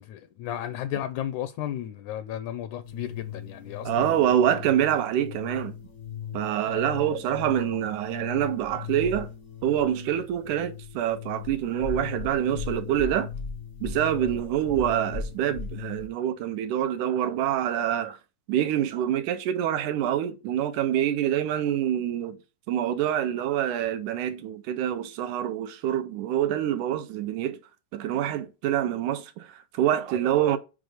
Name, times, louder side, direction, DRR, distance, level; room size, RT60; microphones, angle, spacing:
voice 1, 0.0-4.3 6.6-6.9, left 11 dB, 80° left, 1.8 m, -34 dB
sound 1, 2.8-16.1, left 6 dB, 55° left, 0.8 m, -38 dB
voice 2, 3.9-5.8 6.3-9.3 9.6-13.3 13.8-18.2 18.5-22.4 22.7-27.6 27.9-30.6, right 11 dB, 80° right, 2.1 m, -26 dB
6.3 x 4.9 x 4.8 m
omnidirectional pair, 3.8 m